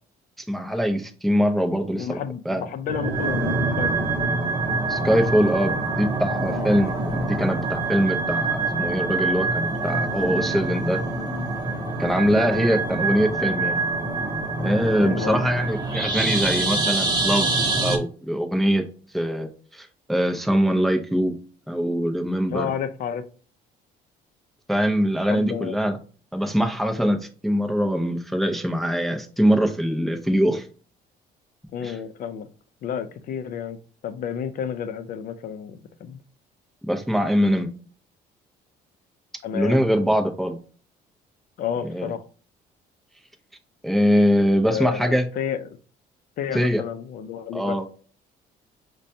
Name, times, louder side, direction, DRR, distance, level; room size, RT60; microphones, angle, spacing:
voice 1, 0.5-2.7 4.9-11.0 12.0-13.8 14.6-17.5 17.8-18.9 19.1-21.4 21.7-22.7 24.7-26.0 26.3-30.7 31.8-32.0 36.8-37.7 39.5-40.6 41.9-42.1 43.8-45.3 46.5-46.8 47.5-47.9, equal, ahead, 3 dB, 0.5 m, -23 dB
voice 2, 1.9-3.9 6.5-6.7 12.3-12.7 15.0-15.4 22.5-23.2 25.3-25.8 31.7-32.5 32.8-36.2 39.4-39.8 41.6-42.2 44.7-45.7 46.4-47.8, left 8 dB, 55° left, 10 dB, 0.5 m, -31 dB
sound 1, 2.9-18.0, right 3 dB, 25° right, 0.8 m, -25 dB
5.0 x 2.2 x 2.7 m, 0.39 s
cardioid pair, 110°, 17 cm